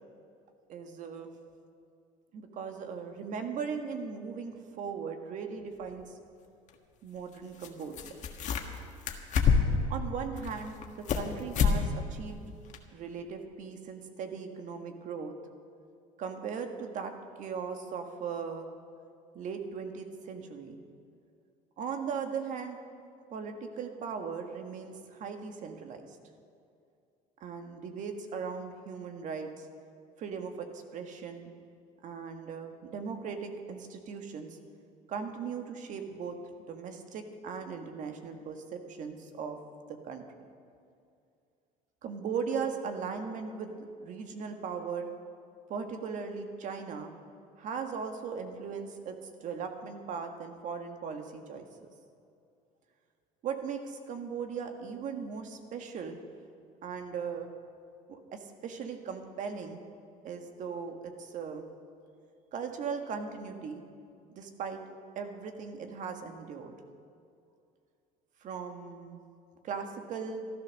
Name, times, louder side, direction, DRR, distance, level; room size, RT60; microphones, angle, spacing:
voice 1, 0.7-1.3 2.3-6.1 7.0-8.2 9.9-12.4 12.9-15.4 16.2-17.1 17.4-18.7 19.3-20.8 21.8-22.8 23.3-26.2 27.4-29.7 30.2-31.5 32.0-34.6 35.1-36.4 36.7-39.6 39.9-40.2 42.0-45.1 45.7-47.1 47.6-51.6 53.4-56.2 56.8-57.5 58.1-59.8 60.2-61.6 62.5-63.8 64.3-64.8 65.1-66.7 68.4-69.2 69.6-70.4, right 6 dB, 55° right, 5 dB, 1.6 m, -38 dB
sound 1, 5.9-6.0 7.6-7.7 7.9-8.8 9.1-9.9 10.4-11.3 11.5-11.8 12.1-12.2 12.7-12.8, left 6 dB, 50° left, 1.5 m, -26 dB
13.5 x 12.0 x 6.5 m, 2.4 s
supercardioid pair, 95°, 16 cm